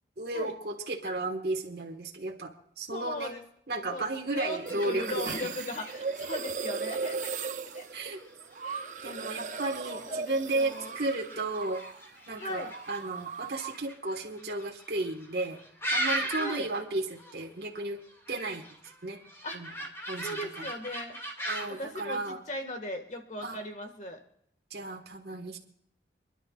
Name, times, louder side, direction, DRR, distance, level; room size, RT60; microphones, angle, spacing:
voice 1, 0.2-3.3 3.7-5.5 7.9-8.2 9.0-11.8 12.3-15.6 15.9-18.0 18.3-19.2 19.5-19.7 20.1-20.7 21.5-22.4 23.4-23.6 24.7-25.6, right 2 dB, 60° right, 0 dB, 1.5 m, -34 dB
voice 2, 2.9-3.4 3.9-8.2 8.6-9.3 9.8-10.9 12.4-12.7 16.3-16.7 19.4-19.6 20.2-21.2 21.7-24.2, left 1 dB, 40° left, 5 dB, 1.8 m, -39 dB
sound 1, 4.3-16.8 17.0-17.4 17.8-21.8, right 1 dB, 15° left, 2.1 m, -39 dB
sound 2, 4.7-12.1 12.3-13.9, right 5 dB, 45° right, 0.5 m, -38 dB
28.0 x 11.0 x 2.4 m, 0.70 s
head